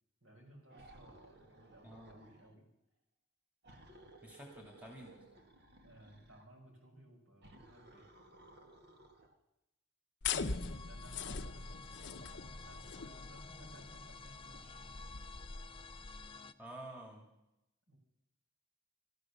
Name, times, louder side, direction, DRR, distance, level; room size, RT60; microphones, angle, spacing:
voice 1, 0.2-2.7 5.8-8.0 10.8-15.1 17.9-18.0, right 1 dB, 70° right, 0 dB, 5.5 m, -59 dB
sound 1, 0.7-2.5 3.6-6.5 7.4-9.4, right 2 dB, 50° right, 1.8 m, -59 dB
voice 2, 1.8-2.2 4.2-5.2 16.6-17.2, right 1 dB, 5° right, 0 dB, 2.4 m, -50 dB
sound 2, 10.2-16.3, left 5 dB, 55° left, 0.7 m, -42 dB
sound 3, 10.4-16.5, left 4 dB, 25° left, 0.5 m, -53 dB
13.0 x 13.0 x 7.2 m, 0.88 s
head